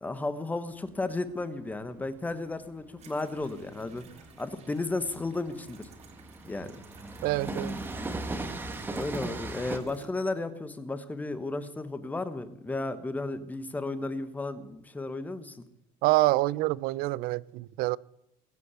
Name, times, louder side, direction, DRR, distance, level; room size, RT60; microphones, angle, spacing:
voice 1, 0.0-4.0 4.4-5.9 6.4-6.7 8.5-8.6 8.9-15.6, left 2 dB, 10° left, 1.0 m, -34 dB
Train, 0.7-9.8, right 2 dB, 10° right, 1.4 m, -38 dB
sound 1, 3.0-10.1, right 7 dB, 40° right, 2.3 m, -54 dB
voice 2, 7.2-7.8 16.0-18.0, right 19 dB, 60° right, 0.5 m, -26 dB
21.0 x 8.3 x 8.1 m
cardioid pair, 175°, 17 cm